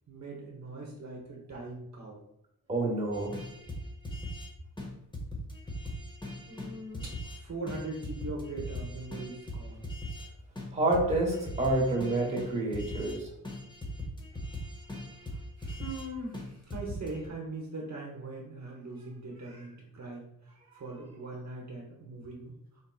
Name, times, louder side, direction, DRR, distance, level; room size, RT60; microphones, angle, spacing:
voice 1, 0.1-2.2 6.5-9.9 15.6-22.5, right 2 dB, 50° right, -2 dB, 0.9 m, -41 dB
voice 2, 2.7-3.3 10.7-13.3, right 2 dB, 20° right, -2 dB, 1.0 m, -28 dB
sound 1, 3.1-4.5 4.8-4.9 5.1-7.4 7.7-10.3 10.6-10.7 10.9-13.2 13.4-16.1 16.3-16.5 16.7-17.3, equal, 15° left, 0.7 m, -39 dB
4.3 x 4.0 x 2.3 m, 0.81 s
wide cardioid pair, 150°, 36 cm